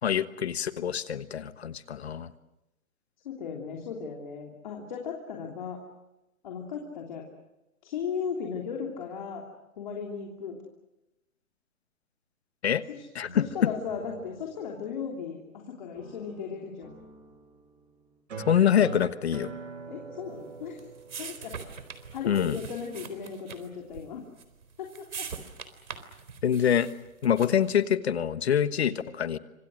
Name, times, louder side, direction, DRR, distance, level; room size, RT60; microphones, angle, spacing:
voice 1, 0.0-2.3 12.6-12.8 13.1-13.4 18.5-19.5 22.3-22.6 26.4-26.9 27.2-29.4, left 9 dB, 50° left, 12 dB, 1.3 m, -25 dB
voice 2, 3.2-5.8 6.4-7.3 7.8-9.4 9.8-10.6 12.9-13.0 13.3-17.0 19.9-20.8 21.2-21.5 22.1-24.2 24.8-25.3, left 6 dB, 35° left, 0 dB, 3.2 m, -36 dB
sound 1, 13.2-15.6 15.9-18.2, equal, 15° right, 4.9 m, -52 dB
sound 2, 18.3-23.3, right 5 dB, 65° right, 3.8 m, -43 dB
sound 3, 20.3-27.8, right 6 dB, 85° right, 4.2 m, -43 dB
28.5 x 26.0 x 6.4 m, 0.97 s
hypercardioid pair, 175°, 41 cm